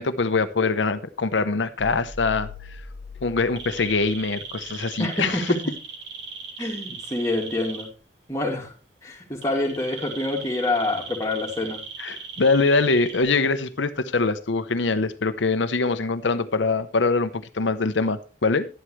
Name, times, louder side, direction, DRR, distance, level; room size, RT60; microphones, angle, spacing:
voice 1, 0.0-2.8 3.2-5.5 12.0-18.7, left 3 dB, 75° left, 0.8 m, -23 dB
sound 1, 1.8-4.8, left 4 dB, 50° left, 0.8 m, -41 dB
sound 2, 3.6-7.8 9.4-13.2, right 5 dB, 75° right, 4.4 m, -37 dB
voice 2, 5.0-5.6 6.6-7.9 8.3-8.7 9.0-11.8, left 2 dB, 15° left, 2.3 m, -26 dB
11.5 x 11.5 x 3.2 m
head